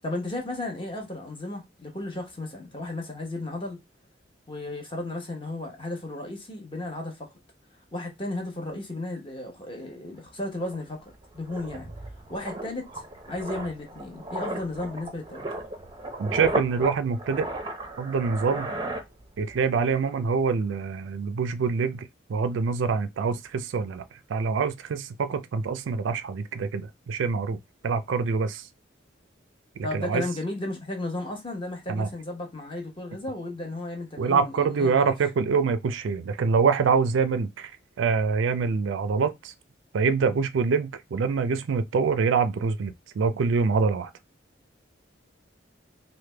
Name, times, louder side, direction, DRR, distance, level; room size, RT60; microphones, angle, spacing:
voice 1, 0.0-3.8 4.5-7.3 7.9-11.9 12.3-15.6 29.8-35.1, left 2 dB, 25° left, 0.9 m, -34 dB
sound 1, 10.2-10.3 10.6-19.7 19.9-20.2, right 1 dB, 25° right, 0.5 m, -35 dB
voice 2, 16.2-17.5 18.0-18.7 19.4-24.0 24.3-28.7 29.8-30.2 31.9-32.1 34.2-37.7 38.0-39.5 39.9-44.1, right 5 dB, 80° right, 0.4 m, -25 dB
3.2 x 2.1 x 3.2 m
head